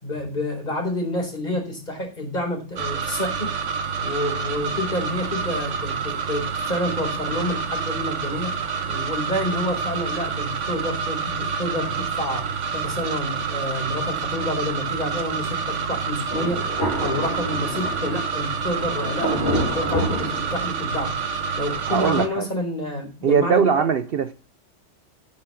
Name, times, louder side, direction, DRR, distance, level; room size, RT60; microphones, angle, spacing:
voice 1, 0.0-3.5 4.0-8.6 8.9-23.7, left 1 dB, 40° left, 4.5 m, -29 dB
sound 1, 2.8-22.3, right 5 dB, 85° right, 1.4 m, -28 dB
Thunder, 16.3-21.1, equal, 55° left, 3.9 m, -29 dB
voice 2, 21.9-22.5 23.2-24.3, right 7 dB, 60° right, 0.8 m, -20 dB
10.5 x 6.0 x 7.8 m
omnidirectional pair, 1.2 m